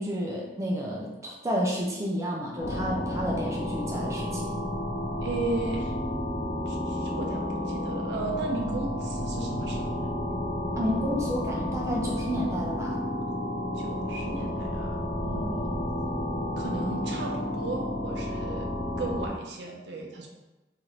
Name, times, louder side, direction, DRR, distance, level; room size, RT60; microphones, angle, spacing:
voice 1, 0.0-4.6 10.8-13.0, equal, 15° right, -2 dB, 0.3 m, -31 dB
sound 1, 2.6-19.3, left 1 dB, 50° left, 0.4 m, -31 dB
voice 2, 5.2-5.9 6.7-10.1 13.8-15.8 16.5-18.7 19.0-20.3, right 3 dB, 70° right, 1 dB, 0.5 m, -35 dB
2.9 x 2.4 x 3.0 m, 1.1 s
head